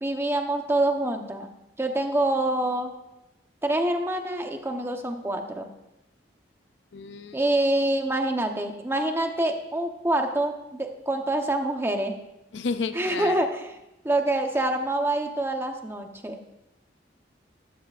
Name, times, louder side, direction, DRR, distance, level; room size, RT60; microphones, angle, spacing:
voice 1, 0.0-1.5 1.8-2.9 3.6-5.7 7.3-12.2 12.9-13.7 14.0-16.4, right 1 dB, 15° right, 4 dB, 0.9 m, -26 dB
voice 2, 6.9-7.5 12.5-13.5, left 4 dB, 85° left, 11 dB, 0.5 m, -32 dB
13.0 x 13.0 x 2.5 m, 0.91 s
head